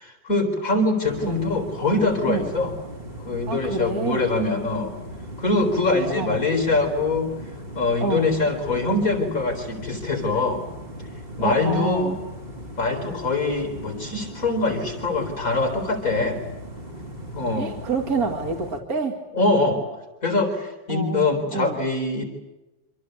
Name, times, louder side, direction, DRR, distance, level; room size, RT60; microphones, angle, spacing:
voice 1, 0.0-2.7 3.2-4.9 5.4-7.3 7.7-10.6 11.4-12.1 12.8-16.4 17.3-17.7 19.3-19.8 20.2-22.2, left 2 dB, 45° left, 6 dB, 4.6 m, -23 dB
sound 1, 1.0-18.8, right 1 dB, 30° right, 2.9 m, -38 dB
voice 2, 3.5-4.3 6.1-6.4 8.0-8.3 11.4-12.2 17.6-19.2 20.9-21.8, right 4 dB, 45° right, 3 dB, 2.8 m, -27 dB
27.0 x 26.5 x 8.2 m, 1.0 s
omnidirectional pair, 2.1 m